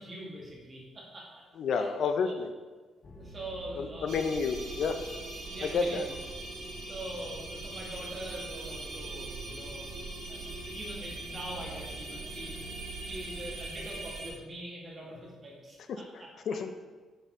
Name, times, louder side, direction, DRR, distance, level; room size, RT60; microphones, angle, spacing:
voice 1, 0.0-1.4 1.7-2.4 3.1-4.2 5.5-6.1 6.9-9.9 10.3-12.7 13.0-16.6, right 1 dB, 35° right, -4 dB, 1.8 m, -43 dB
voice 2, 1.6-2.5 3.8-5.0 5.7-6.0 16.5-16.7, left 5 dB, 65° left, 8 dB, 0.5 m, -30 dB
sound 1, 3.0-13.6, right 1 dB, 40° left, 0.8 m, -48 dB
sound 2, 4.1-14.3, right 2 dB, 85° right, 1.1 m, -41 dB
6.6 x 4.2 x 3.6 m, 1.4 s
cardioid pair, 90°, 0 cm